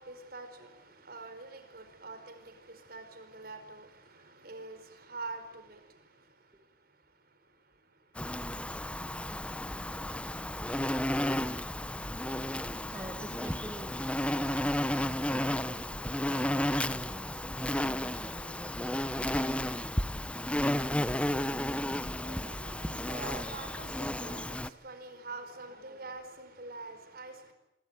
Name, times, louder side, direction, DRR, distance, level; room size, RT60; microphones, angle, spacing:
voice 1, 0.0-9.0 20.9-27.5, right 3 dB, 55° right, 4.9 m, -47 dB
Insect, 8.2-24.7, left 1 dB, 5° left, 1.0 m, -33 dB
voice 2, 12.9-15.8 16.3-19.6, right 1 dB, 15° right, 2.2 m, -48 dB
26.5 x 23.0 x 9.1 m
head